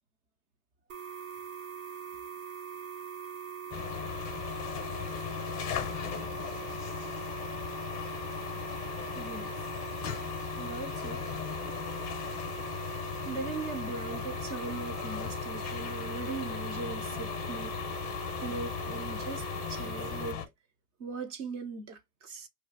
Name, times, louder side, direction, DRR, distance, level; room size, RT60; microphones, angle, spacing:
sound 1, 0.9-20.3, right 7 dB, 60° right, 0.8 m, -42 dB
sound 2, 3.7-20.5, left 9 dB, 25° left, 0.6 m, -37 dB
voice 1, 9.1-9.6 10.6-11.3 12.5-12.6 13.2-17.7 18.4-20.4 21.0-22.5, right 4 dB, 25° right, 0.4 m, -39 dB
2.5 x 2.2 x 3.8 m
hypercardioid pair, 125°, 47 cm